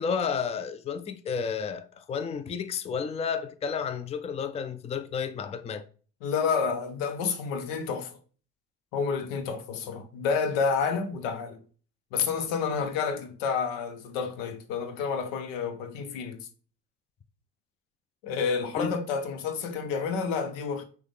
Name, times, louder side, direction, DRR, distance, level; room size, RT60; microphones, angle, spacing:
voice 1, 0.0-5.8 18.7-18.9, left 6 dB, 15° left, 0.4 m, -31 dB
voice 2, 6.2-8.1 8.9-11.6 12.1-16.5 18.2-20.8, left 5 dB, 85° left, 0.9 m, -29 dB
6.2 x 2.4 x 3.4 m
supercardioid pair, 80°, 38 cm